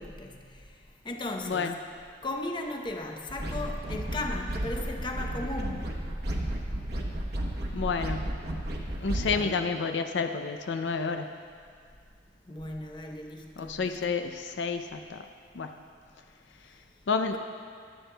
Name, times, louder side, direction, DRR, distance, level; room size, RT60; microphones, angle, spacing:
voice 1, 0.0-1.7 2.2-6.1 9.2-9.6 12.5-14.1 17.3-17.4, left 2 dB, 25° left, 2 dB, 0.8 m, -37 dB
sound 1, 3.3-9.3, right 1 dB, 60° right, 1.1 m, -33 dB
voice 2, 7.7-8.3 9.0-11.3 13.6-15.3 15.5-15.7 17.1-17.4, left 5 dB, 80° left, 6 dB, 0.5 m, -30 dB
23.0 x 8.1 x 2.3 m, 2.1 s
head